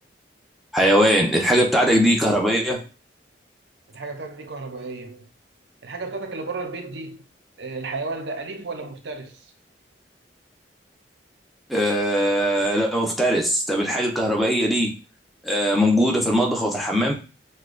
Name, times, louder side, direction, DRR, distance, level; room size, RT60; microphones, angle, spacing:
voice 1, 0.7-2.8 11.7-14.9 15.4-17.1, equal, ahead, 0.8 m, -20 dB
voice 2, 3.9-5.3 5.8-7.3 7.6-9.4, right 3 dB, 80° right, 0.7 m, -33 dB
6.4 x 2.3 x 2.5 m
head